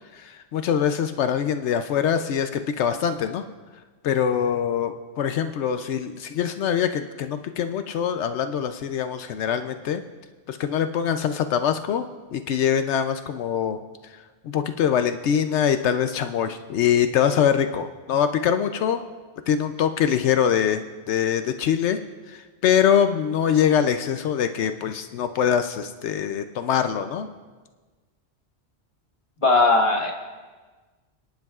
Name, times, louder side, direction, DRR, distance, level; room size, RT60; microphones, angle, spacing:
voice 1, 0.1-3.4 4.0-10.0 10.5-14.1 14.4-19.0 19.5-22.0 22.3-27.3, left 8 dB, 80° left, 8 dB, 0.9 m, -23 dB
voice 2, 29.4-30.1, left 3 dB, 30° left, 1 dB, 1.3 m, -18 dB
27.5 x 10.5 x 2.4 m, 1.3 s
omnidirectional pair, 1.2 m